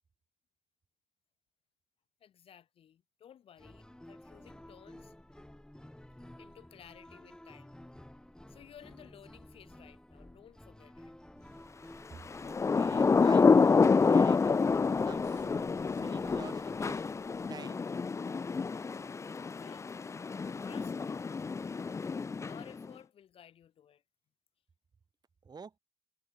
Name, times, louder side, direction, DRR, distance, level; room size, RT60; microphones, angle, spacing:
voice 1, 2.2-5.1 6.4-7.7 8.5-11.1 19.4-21.2 22.4-24.0, left 9 dB, 75° left, 7.4 m, -56 dB
sound 1, 3.6-17.5, left 1 dB, 5° left, 2.7 m, -53 dB
voice 2, 11.3-17.1 17.5-17.9 25.4-25.8, right 5 dB, 45° right, 3.0 m, -50 dB
Thunder / Rain, 12.3-22.9, left 4 dB, 30° left, 0.4 m, -28 dB
cardioid pair, 70°, 10 cm